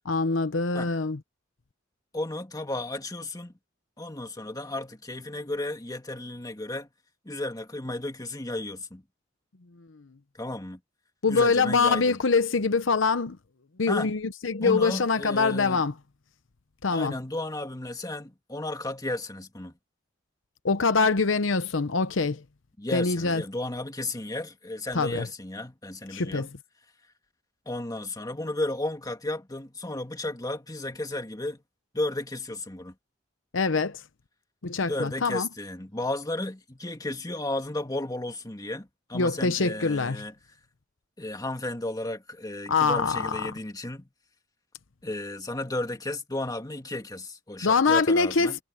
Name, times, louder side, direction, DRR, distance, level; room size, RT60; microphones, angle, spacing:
voice 1, 0.1-1.2 11.2-13.4 13.8-15.9 16.8-17.2 20.6-22.4 22.9-23.4 24.9-25.3 26.1-26.5 33.5-34.0 34.6-35.5 39.1-40.2 42.7-43.4 47.6-48.6, left 4 dB, 75° left, 0.9 m, -24 dB
voice 2, 2.1-3.5 4.0-6.9 7.3-9.0 10.4-10.8 11.3-12.2 13.9-14.1 14.6-15.8 16.9-19.7 22.8-26.5 27.7-31.6 31.9-32.9 34.8-40.3 41.2-44.1 45.0-48.6, left 2 dB, 20° left, 2.1 m, -33 dB
head